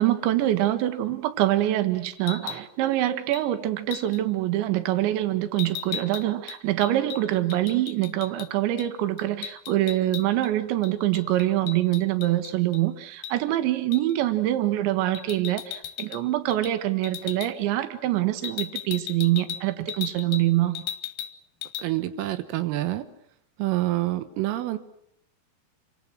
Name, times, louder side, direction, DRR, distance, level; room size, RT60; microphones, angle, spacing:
voice 1, 0.0-20.8, right 14 dB, 70° right, 10 dB, 3.7 m, -25 dB
sound 1, 2.2-2.7 3.3-3.5 3.9-4.2 5.6-8.5 8.8-8.9 9.2-10.5 10.8-12.8 13.2-13.4 13.9-14.1 15.1-16.2 16.5-16.8 17.0-17.5 18.4-20.5 20.7-21.3 21.6-21.9, left 11 dB, 70° left, 2.5 m, -36 dB
voice 2, 21.8-23.1 23.6-24.8, right 16 dB, 90° right, 11 dB, 3.9 m, -27 dB
29.5 x 25.0 x 6.3 m, 0.71 s
omnidirectional pair, 5.8 m